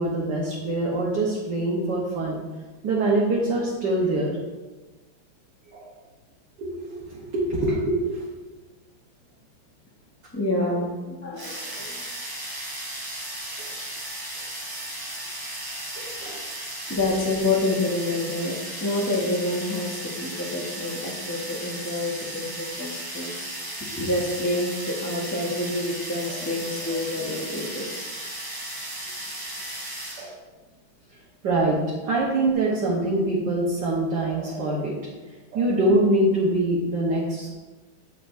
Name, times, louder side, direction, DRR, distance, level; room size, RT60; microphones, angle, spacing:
voice 1, 0.0-2.4 2.8-4.4 5.7-5.9 6.6-8.2 13.6-13.7 16.0-16.4 26.3-26.4 26.8-26.9 30.2-30.4 31.4-31.8 32.0-34.9 35.5-37.5, right 2 dB, 60° right, -5 dB, 1.6 m, -24 dB
voice 2, 10.3-12.0 16.9-23.5 23.8-28.1, left 2 dB, 15° left, -2 dB, 0.5 m, -28 dB
sound 1, 11.4-30.3, right 1 dB, 35° right, 0.3 m, -35 dB
8.6 x 6.6 x 2.6 m, 1.2 s
omnidirectional pair, 2.3 m